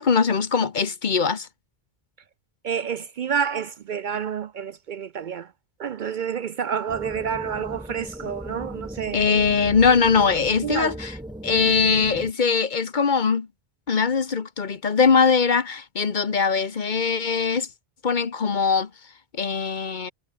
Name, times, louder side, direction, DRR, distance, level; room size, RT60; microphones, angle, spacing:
voice 1, 0.0-1.5 9.1-11.1 11.4-13.5 13.9-17.7 18.0-18.9 19.4-20.1, left 5 dB, 50° left, 1.2 m, -21 dB
voice 2, 2.6-5.5 5.8-9.2 10.6-10.9, right 7 dB, 60° right, 0.6 m, -29 dB
sound 1, 6.9-12.3, right 1 dB, 5° right, 0.8 m, -37 dB
omnidirectional pair, 1.0 m